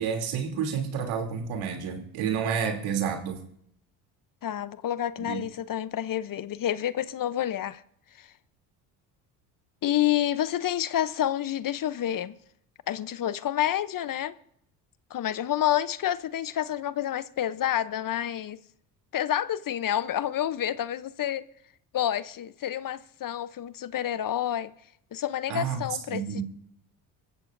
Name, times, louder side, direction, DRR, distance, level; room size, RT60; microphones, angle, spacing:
voice 1, 0.0-3.4 5.3-5.4 25.5-26.4, right 7 dB, 70° right, 3.2 m, -30 dB
voice 2, 4.4-7.8 8.2-8.3 9.8-12.4 12.9-14.3 15.1-18.6 19.1-21.4 21.9-24.7 25.1-26.4, left 11 dB, 40° left, 0.8 m, -29 dB
26.0 x 14.5 x 2.7 m
hypercardioid pair, 65°, 49 cm